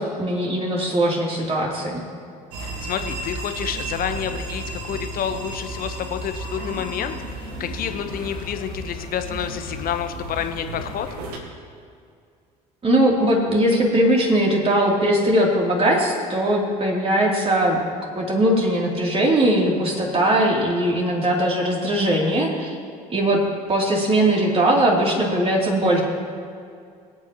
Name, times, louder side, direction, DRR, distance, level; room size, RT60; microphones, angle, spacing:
voice 1, 0.0-2.0 12.8-17.8 18.1-22.8 23.1-23.4 23.7-26.0, right 1 dB, 30° right, -2 dB, 3.1 m, -20 dB
sound 1, 2.5-11.4, right 2 dB, 75° right, 1.7 m, -33 dB
voice 2, 2.8-7.2 7.6-11.1, left 9 dB, 50° left, 7 dB, 1.1 m, -29 dB
23.0 x 8.6 x 3.0 m, 2.3 s
hypercardioid pair, 65°, 20 cm